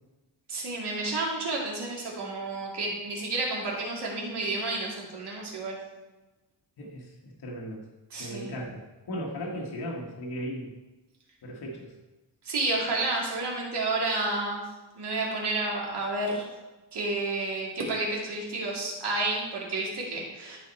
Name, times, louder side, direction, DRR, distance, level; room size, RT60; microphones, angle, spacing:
voice 1, 0.5-5.8 8.1-8.6 12.4-14.6 15.0-16.5 16.9-20.6, right 2 dB, 65° right, -3 dB, 2.1 m, -30 dB
voice 2, 6.8-7.9 8.2-8.8 9.1-10.7 11.4-11.9, equal, 60° left, -2 dB, 1.4 m, -36 dB
12.5 x 4.3 x 4.3 m, 1.1 s
wide cardioid pair, 150°, 44 cm